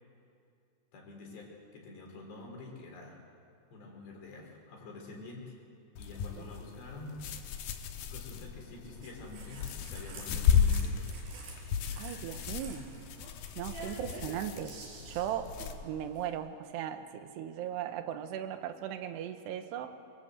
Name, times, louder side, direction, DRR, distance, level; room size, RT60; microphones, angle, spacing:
voice 1, 0.9-3.2 3.7-5.5 6.0-7.2 8.1-11.1, left 3 dB, 90° left, 0 dB, 6.3 m, -47 dB
sound 1, 6.0-15.8, left 7 dB, 75° left, 3.1 m, -34 dB
sound 2, 9.0-16.3, right 2 dB, 65° right, 5.8 m, -49 dB
voice 2, 12.0-12.9 13.6-14.7 15.1-15.6 15.8-19.9, right 10 dB, 85° right, 8 dB, 3.3 m, -37 dB
24.0 x 22.5 x 8.0 m, 2.5 s
omnidirectional pair, 4.8 m